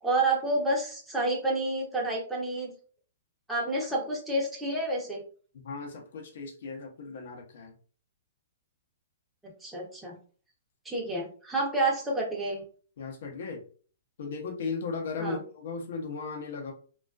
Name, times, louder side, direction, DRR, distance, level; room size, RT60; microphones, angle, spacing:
voice 1, 0.0-2.7 3.5-5.2 9.6-10.2 10.8-12.6 15.2-15.4, right 2 dB, 5° right, -4 dB, 0.8 m, -29 dB
voice 2, 5.5-7.7 13.0-13.6 14.2-16.7, left 4 dB, 60° left, 3 dB, 0.7 m, -36 dB
2.3 x 2.2 x 2.4 m, 0.41 s
hypercardioid pair, 120°, 0 cm